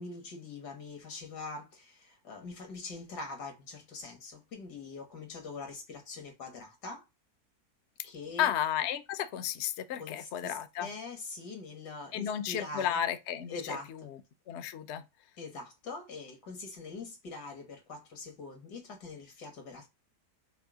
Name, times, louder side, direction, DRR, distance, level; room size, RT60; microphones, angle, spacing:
voice 1, 0.0-7.0 8.0-8.5 10.0-13.0 13.5-14.1 15.4-19.9, left 3 dB, 90° left, 1.9 m, -43 dB
voice 2, 8.4-10.9 12.1-13.6 14.5-15.0, left 10 dB, 65° left, 0.7 m, -32 dB
5.4 x 2.1 x 4.7 m
omnidirectional pair, 1.7 m